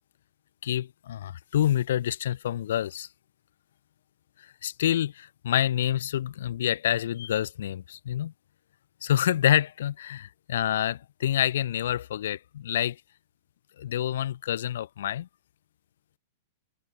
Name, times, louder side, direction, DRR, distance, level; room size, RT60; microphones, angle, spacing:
voice 1, 0.6-3.1 4.6-8.3 9.0-13.0 13.8-15.3, left 11 dB, 75° left, 0.8 m, -27 dB
supercardioid pair, 165°, 0 cm